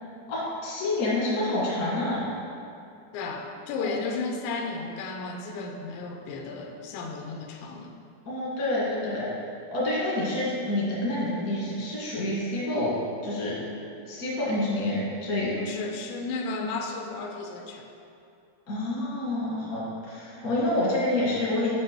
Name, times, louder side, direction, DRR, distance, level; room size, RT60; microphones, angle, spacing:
voice 1, 0.3-2.3 3.7-3.9 8.2-9.3 9.7-12.9 13.2-13.5 14.0-15.5 18.7-21.7, left 1 dB, 60° left, -6 dB, 0.9 m, -28 dB
voice 2, 3.1-8.0 15.6-17.9 20.4-20.5, left 3 dB, 85° left, 2 dB, 2.9 m, -34 dB
9.2 x 4.8 x 4.6 m, 2.7 s
omnidirectional pair, 5.0 m